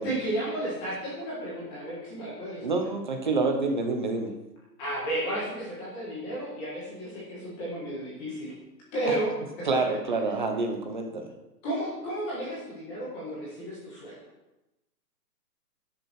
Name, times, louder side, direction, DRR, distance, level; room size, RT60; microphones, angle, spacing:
voice 1, 0.0-2.8 4.8-8.5 8.9-9.3 9.6-9.7 11.6-14.2, right 1 dB, 10° left, -7 dB, 1.4 m, -33 dB
voice 2, 2.6-4.3 9.6-11.3, right 3 dB, 30° right, 4 dB, 1.0 m, -27 dB
12.0 x 6.7 x 4.5 m, 0.96 s
hypercardioid pair, 180°, 49 cm